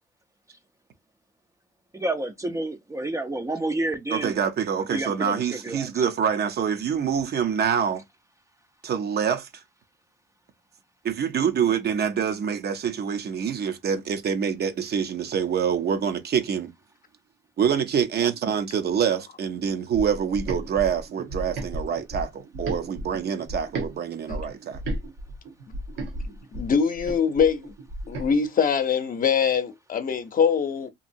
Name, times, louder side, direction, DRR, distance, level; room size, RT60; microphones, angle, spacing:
voice 1, 1.9-4.4 4.9-5.9, right 2 dB, 15° right, 0.4 m, -29 dB
voice 2, 4.1-8.0 8.8-9.6 11.0-16.7 17.6-24.8, right 7 dB, 55° right, 0.6 m, -26 dB
sound 1, 19.9-23.9 24.3-28.3, right 1 dB, 80° right, 1.0 m, -34 dB
voice 3, 26.5-27.7 28.1-30.9, left 6 dB, 45° left, 0.6 m, -23 dB
2.8 x 2.6 x 2.6 m
cardioid pair, 90°, 20 cm